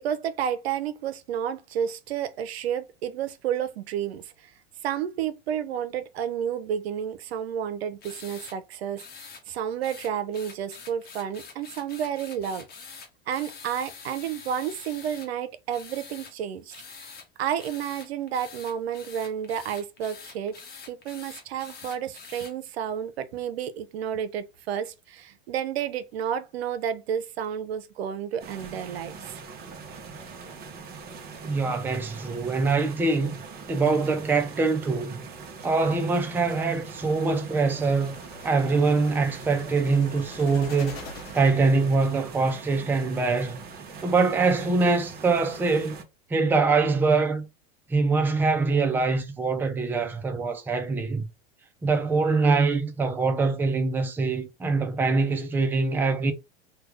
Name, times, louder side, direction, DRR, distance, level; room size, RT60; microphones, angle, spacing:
voice 1, 0.0-4.5 4.8-9.0 9.5-12.7 13.3-17.1 17.4-20.5 20.9-29.4, right 9 dB, 90° right, 0.7 m, -31 dB
sound 1, 8.0-8.6 9.0-9.4 9.8-15.3 15.7-16.3 16.7-17.3 17.6-22.5, left 5 dB, 30° left, 1.0 m, -45 dB
sound 2, 28.4-46.0, right 5 dB, 30° right, 0.9 m, -42 dB
voice 2, 31.4-33.4 33.7-35.3 35.6-38.2 38.4-41.0 41.3-43.6 44.0-45.9 46.3-47.5 47.9-51.3 51.8-56.3, right 4 dB, 5° right, 0.4 m, -24 dB
sound 3, 37.6-42.2, left 3 dB, 75° left, 1.2 m, -45 dB
3.4 x 2.3 x 3.3 m
supercardioid pair, 125°, 30 cm